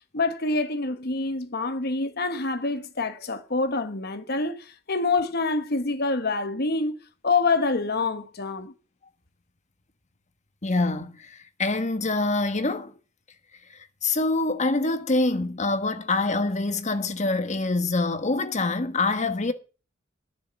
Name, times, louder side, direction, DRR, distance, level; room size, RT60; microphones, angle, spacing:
voice 1, 0.1-8.7, left 3 dB, 55° left, 1.4 m, -26 dB
voice 2, 10.6-12.9 14.0-19.5, left 2 dB, 35° left, 1.4 m, -25 dB
11.0 x 6.7 x 7.7 m
head